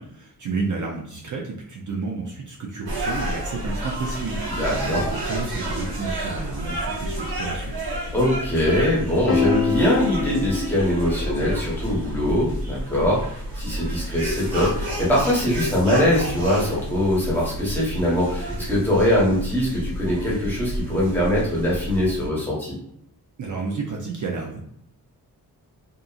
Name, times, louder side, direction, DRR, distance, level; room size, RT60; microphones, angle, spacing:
voice 1, 0.0-7.8 23.4-24.6, right 4 dB, 55° right, -1 dB, 0.5 m, -31 dB
sound 1, 2.9-22.3, right 1 dB, 80° right, 1.1 m, -30 dB
voice 2, 4.5-5.0 8.1-22.7, left 1 dB, 5° left, -7 dB, 1.0 m, -22 dB
sound 2, 9.3-11.7, left 6 dB, 40° left, 0.6 m, -25 dB
2.7 x 2.5 x 2.4 m, 0.72 s
wide cardioid pair, 165°, 37 cm